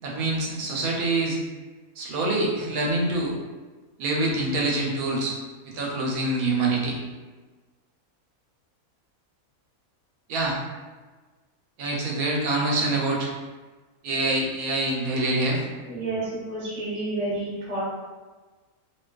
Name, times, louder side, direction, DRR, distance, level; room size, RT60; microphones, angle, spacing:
voice 1, 0.0-1.4 2.0-3.3 4.0-5.4 5.6-7.0 10.3-10.6 11.8-13.3 14.0-15.6, right 2 dB, 85° right, -2 dB, 1.1 m, -25 dB
voice 2, 15.9-17.8, right 2 dB, 30° right, -10 dB, 0.8 m, -30 dB
2.6 x 2.2 x 2.3 m, 1.3 s
omnidirectional pair, 1.5 m